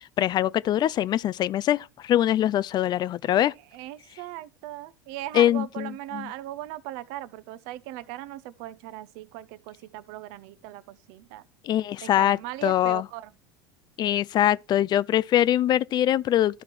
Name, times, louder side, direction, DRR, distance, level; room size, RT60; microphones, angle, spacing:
voice 1, 0.2-3.5 5.3-6.3 11.6-13.0 14.0-16.6, left 12 dB, 40° left, 0.4 m, -23 dB
voice 2, 3.7-11.4 12.0-13.3, right 15 dB, 60° right, 0.7 m, -38 dB
13.0 x 4.5 x 3.3 m
hypercardioid pair, 80°, 12 cm